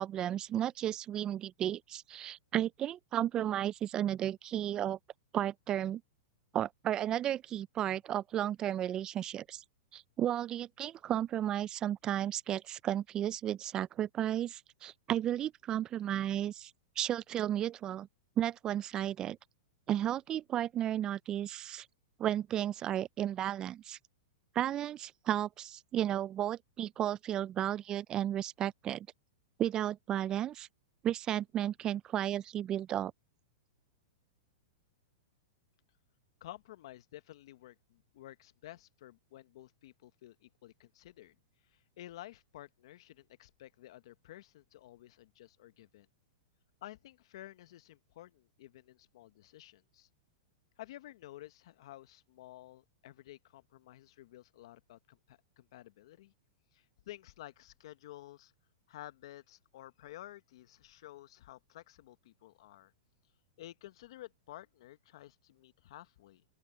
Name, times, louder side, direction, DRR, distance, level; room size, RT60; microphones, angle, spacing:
voice 1, 0.0-5.0 5.3-6.0 6.5-9.6 9.9-16.7 17.0-18.1 18.4-19.4 19.9-21.9 22.2-24.0 24.6-29.1 29.6-30.7 31.0-33.1, right 11 dB, 25° right, 0.4 m, -33 dB
voice 2, 36.4-41.4 41.6-46.1 46.8-50.1 50.8-56.3 56.7-58.5 58.9-62.9 63.6-66.4, left 15 dB, 65° left, 1.1 m, -52 dB
open air
hypercardioid pair, 135°, 3 cm